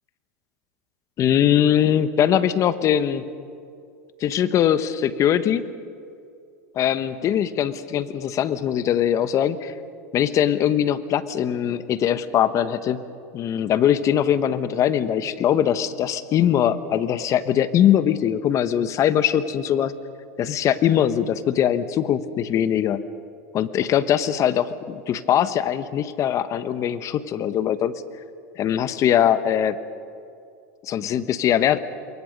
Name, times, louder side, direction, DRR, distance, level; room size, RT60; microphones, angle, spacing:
voice 1, 1.2-3.3 4.2-5.6 6.7-9.7 10.1-13.0 13.3-19.9 20.4-23.0 23.5-27.9 28.6-29.8 30.8-31.8, left 10 dB, 40° left, 13 dB, 1.2 m, -21 dB
27.5 x 23.0 x 5.3 m, 2.4 s
supercardioid pair, 115°, 8 cm